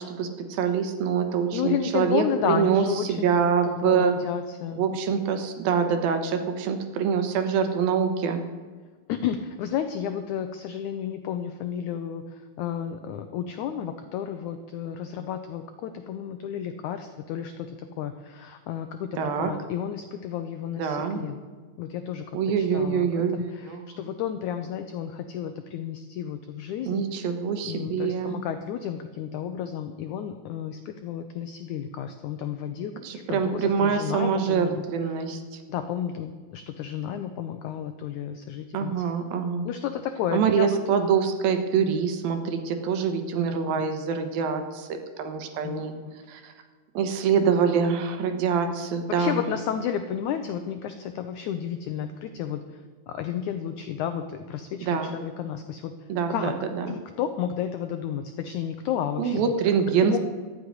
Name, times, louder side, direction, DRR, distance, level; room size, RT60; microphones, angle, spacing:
voice 1, 0.0-4.1 4.8-8.4 19.1-19.5 20.8-21.2 22.3-24.0 26.9-28.4 33.0-35.6 38.7-39.7 40.3-45.9 46.3-46.5 46.9-49.4 54.8-55.1 56.1-57.0 59.2-60.2, right 6 dB, 75° right, 7 dB, 2.9 m, -25 dB
voice 2, 1.5-4.8 5.1-5.2 9.1-21.4 21.8-22.3 22.6-27.0 27.7-34.8 35.7-39.0 39.6-40.8 41.8-41.9 43.4-43.8 45.6-46.2 49.1-52.8 53.1-55.9 56.3-56.5 56.9-59.5 60.0-60.2, left 9 dB, 85° left, 8 dB, 1.7 m, -32 dB
13.5 x 6.4 x 9.6 m, 1.5 s
omnidirectional pair, 4.3 m